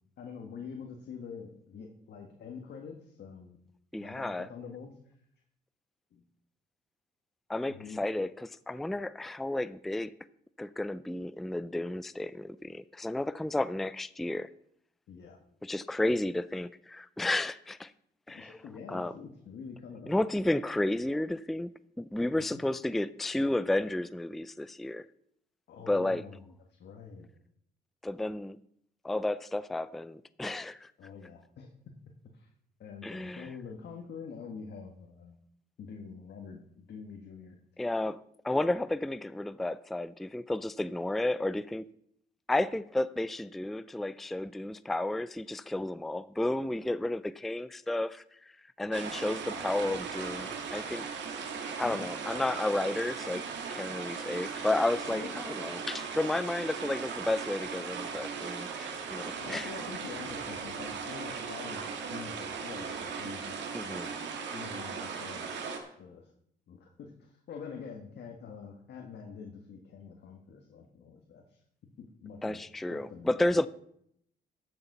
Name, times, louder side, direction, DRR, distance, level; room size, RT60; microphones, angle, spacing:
voice 1, 0.2-3.6 4.0-5.0 6.1-6.2 7.7-8.0 15.1-15.4 18.3-20.1 22.3-22.6 25.7-27.3 31.0-31.9 32.3-32.5 32.8-35.3 35.8-37.6 51.8-52.1 55.0-55.3 59.4-64.1 64.5-65.7 66.0-66.3 66.7-71.6 72.0-72.6 72.9-73.6, left 6 dB, 65° left, 2 dB, 1.6 m, -46 dB
voice 2, 3.9-4.5 7.5-10.1 10.6-14.5 15.6-17.9 18.3-18.5 18.9-19.1 20.1-25.0 25.9-26.2 28.0-28.6 29.0-30.9 33.0-33.5 37.8-38.2 38.4-41.9 42.5-48.5 48.8-51.1 51.8-53.4 53.7-59.7 63.7-64.1 72.4-73.7, left 1 dB, ahead, 16 dB, 0.4 m, -32 dB
sound 1, 48.9-65.8, right 5 dB, 75° right, 2.0 m, -38 dB
13.0 x 7.1 x 5.5 m, 0.71 s
cardioid pair, 90°, 19 cm